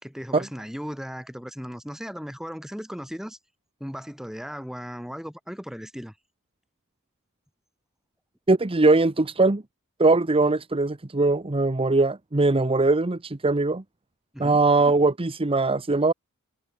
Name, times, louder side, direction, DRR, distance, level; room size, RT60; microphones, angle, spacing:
voice 1, 0.0-3.4 3.8-6.1 14.3-14.6, equal, ahead, 4.7 m, -36 dB
voice 2, 8.5-9.6 10.0-13.8 14.4-16.1, right 3 dB, 25° right, 0.9 m, -21 dB
head